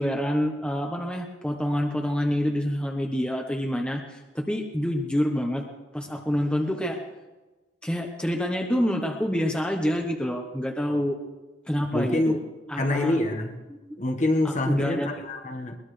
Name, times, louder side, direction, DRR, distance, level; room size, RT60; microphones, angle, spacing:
voice 1, 0.0-5.6 5.9-7.0 7.8-11.2 11.7-12.4 12.7-13.2 13.8-13.9 14.4-15.1, equal, 5° left, 2 dB, 1.1 m, -27 dB
voice 2, 11.9-12.4 12.8-13.6 14.0-15.8, left 1 dB, 40° left, 4 dB, 1.5 m, -25 dB
21.5 x 20.0 x 3.3 m, 1.2 s
head